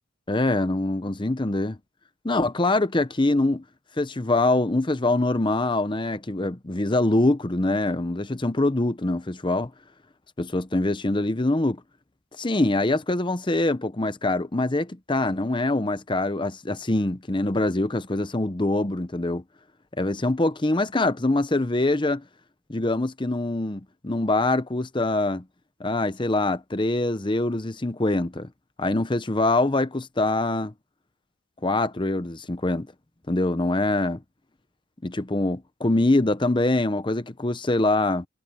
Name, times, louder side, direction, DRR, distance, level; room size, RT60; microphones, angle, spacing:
voice 1, 0.3-1.8 2.2-3.6 4.0-9.7 10.4-11.8 12.4-19.4 20.0-22.2 22.7-25.4 25.8-28.5 28.8-30.7 31.6-32.9 33.3-34.2 35.0-38.3, left 2 dB, 20° left, 0.8 m, -24 dB
head